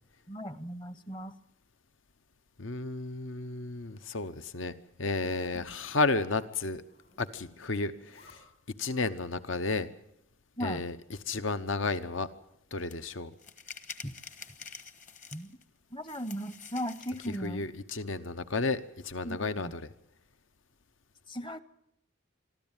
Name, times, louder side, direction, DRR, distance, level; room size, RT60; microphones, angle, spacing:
voice 1, 0.3-1.3 5.5-5.6 10.6-10.8 14.0-14.1 15.3-15.5 15.9-17.7 19.2-19.7 21.3-21.6, equal, 25° left, 15 dB, 0.8 m, -37 dB
voice 2, 2.6-6.8 7.2-8.4 8.8-9.9 10.6-11.0 11.3-12.3 12.7-13.3 17.4-19.9, left 3 dB, 75° left, 13 dB, 0.9 m, -32 dB
Zipper (clothing), 3.7-4.5 5.1-5.6 6.7-7.4 7.9-8.4, left 2 dB, 60° left, 7.1 m, -59 dB
sound 1, 12.9-13.0 13.4-15.6 16.0-17.5, left 6 dB, 40° left, 1.3 m, -47 dB
24.5 x 13.0 x 9.0 m, 0.79 s
head